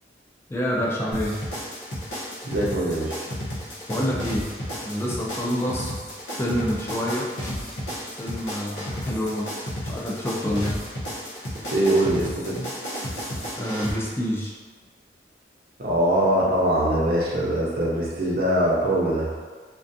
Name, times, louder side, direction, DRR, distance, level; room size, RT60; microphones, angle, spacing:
voice 1, 0.5-1.4 3.9-4.5 4.8-5.9 6.3-7.3 8.2-10.8 13.6-14.5, equal, 15° left, -4 dB, 0.3 m, -27 dB
sound 1, 1.1-13.9, equal, 80° left, 0.8 m, -32 dB
voice 2, 2.4-3.2 11.7-12.6 15.8-19.3, right 1 dB, 55° right, -6 dB, 0.6 m, -22 dB
2.4 x 2.3 x 2.6 m, 1.5 s
head